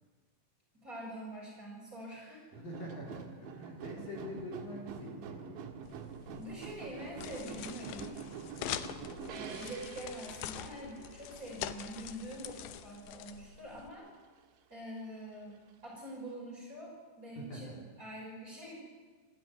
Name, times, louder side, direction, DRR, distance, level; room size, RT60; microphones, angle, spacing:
voice 1, 0.8-2.6 6.4-8.2 9.3-14.1 14.7-18.7, right 1 dB, 15° right, -3 dB, 6.3 m, -45 dB
voice 2, 2.5-5.6 17.4-17.8, equal, 50° left, -2 dB, 5.4 m, -44 dB
sound 1, 2.5-12.5 12.8-13.6 13.9-14.0, right 7 dB, 75° right, 3.8 m, -46 dB
sound 2, 5.8-13.9, left 12 dB, 80° left, 2.2 m, -44 dB
24.5 x 14.0 x 9.3 m, 1.4 s
omnidirectional pair, 5.4 m